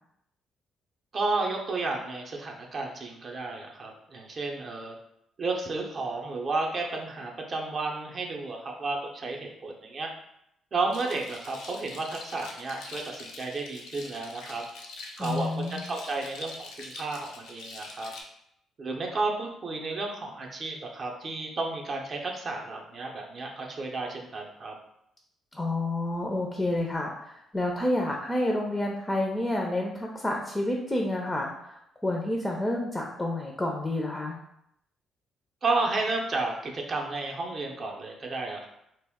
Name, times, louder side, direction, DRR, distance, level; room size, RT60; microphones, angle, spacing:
voice 1, 1.1-5.0 5.4-10.1 10.7-14.6 15.2-18.1 18.8-24.7 35.6-38.7, right 3 dB, 45° right, 1 dB, 0.5 m, -32 dB
sound 1, 10.9-18.2, left 3 dB, 90° left, 0.4 m, -44 dB
voice 2, 15.2-15.8 25.5-34.4, left 1 dB, 15° left, 0 dB, 0.4 m, -29 dB
2.1 x 2.0 x 3.5 m, 0.78 s
cardioid pair, 90°, 0 cm